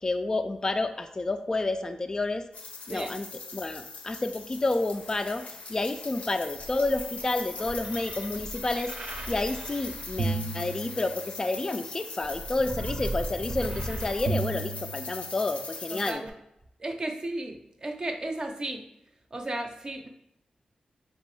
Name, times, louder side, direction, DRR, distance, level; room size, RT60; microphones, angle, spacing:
voice 1, 0.0-2.4 2.9-3.3 3.5-5.4 5.7-8.9 9.3-16.2, left 2 dB, 30° left, 7 dB, 0.3 m, -30 dB
sound 1, 2.5-16.1, left 4 dB, 75° left, 0.6 m, -41 dB
sound 2, 6.5-11.5 12.2-15.5 16.3-16.4, right 2 dB, 75° right, 0.7 m, -35 dB
voice 2, 15.9-16.3 16.8-18.8 19.3-20.1, right 1 dB, 35° right, 4 dB, 0.6 m, -34 dB
5.2 x 2.9 x 3.2 m, 0.82 s
wide cardioid pair, 100°, 2 cm